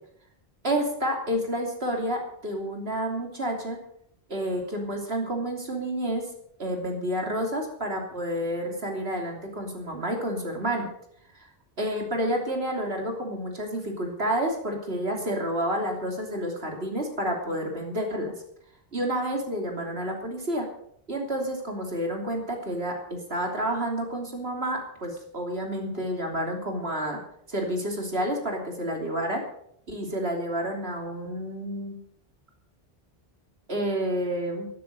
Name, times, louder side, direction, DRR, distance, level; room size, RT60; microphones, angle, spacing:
voice 1, 0.6-3.8 4.3-6.3 6.6-10.9 11.3-11.5 11.8-18.3 18.9-20.6 21.1-27.2 27.5-29.4 29.9-32.0 33.7-34.7, right 1 dB, 75° right, 2 dB, 3.3 m, -29 dB
13.0 x 12.0 x 6.8 m, 0.69 s
omnidirectional pair, 1.0 m